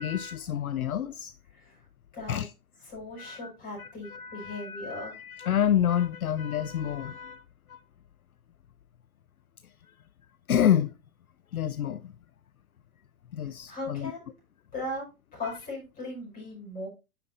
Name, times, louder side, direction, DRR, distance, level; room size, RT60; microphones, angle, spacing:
voice 1, 0.0-1.3 2.3-2.5 3.2-3.5 3.8-7.4 7.7-7.8 10.5-10.9 11.5-12.1 13.3-14.1 15.4-15.6, left 10 dB, 70° left, 0.6 m, -28 dB
voice 2, 2.1-2.4 2.8-5.2 13.7-14.3 14.7-15.0 15.3-16.9, left 2 dB, 20° left, 5.0 m, -38 dB
10.0 x 5.2 x 2.6 m
figure-of-eight pair, 110°, 45 cm